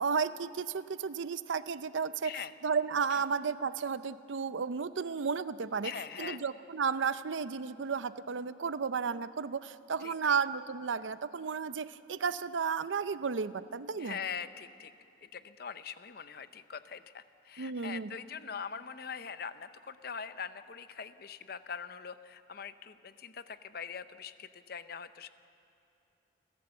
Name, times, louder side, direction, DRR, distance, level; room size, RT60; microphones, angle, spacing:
voice 1, 0.0-2.3 2.6-5.9 6.2-14.2 17.6-18.1, right 5 dB, 85° right, 14 dB, 0.6 m, -33 dB
voice 2, 5.8-6.4 10.0-10.1 14.0-14.9 15.2-25.3, left 7 dB, 55° left, 13 dB, 0.7 m, -42 dB
29.5 x 11.5 x 7.8 m, 2.8 s
head